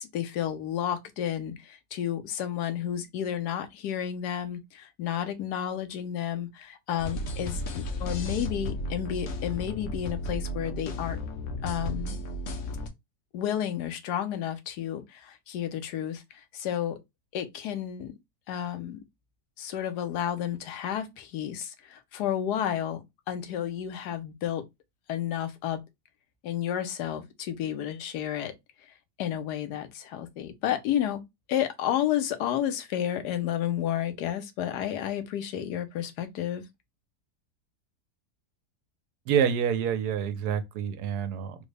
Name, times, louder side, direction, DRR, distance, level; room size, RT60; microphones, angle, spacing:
voice 1, 0.0-11.2 11.6-12.2 13.3-17.0 17.3-18.1 18.5-19.0 19.6-24.6 25.1-25.8 26.4-28.5 28.8-31.2 31.5-36.6, left 10 dB, 85° left, 1.2 m, -31 dB
sound 1, 7.0-12.9, left 1 dB, 65° left, 0.8 m, -34 dB
voice 2, 39.3-41.7, right 8 dB, 80° right, 1.1 m, -27 dB
3.7 x 2.1 x 3.2 m
omnidirectional pair, 1.7 m